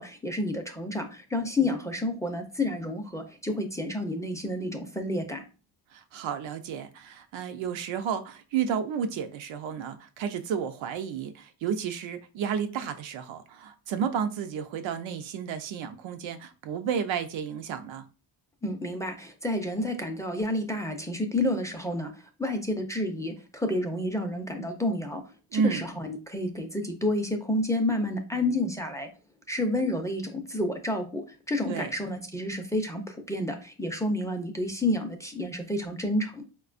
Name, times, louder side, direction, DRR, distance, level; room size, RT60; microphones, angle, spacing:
voice 1, 0.0-5.4 18.6-22.1 22.4-25.2 25.5-29.1 29.5-36.4, left 1 dB, 5° left, 0.5 m, -30 dB
voice 2, 5.9-18.0 25.5-25.8 31.7-31.9, right 7 dB, 75° right, 0.6 m, -32 dB
4.1 x 2.2 x 2.4 m
cardioid pair, 95°, 46 cm